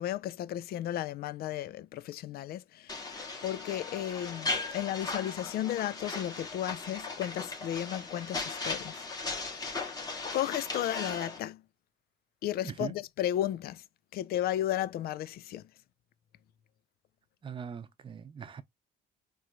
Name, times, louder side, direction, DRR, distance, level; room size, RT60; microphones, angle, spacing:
voice 1, 0.0-8.9 9.5-10.0 10.3-11.6 12.4-13.8 14.1-15.6, left 12 dB, 65° left, 0.5 m, -34 dB
sound 1, 2.9-11.4, left 3 dB, 25° left, 2.1 m, -37 dB
voice 2, 12.6-12.9 17.4-18.6, right 7 dB, 30° right, 0.7 m, -40 dB
4.4 x 3.1 x 2.4 m
cardioid pair, 110°, 17 cm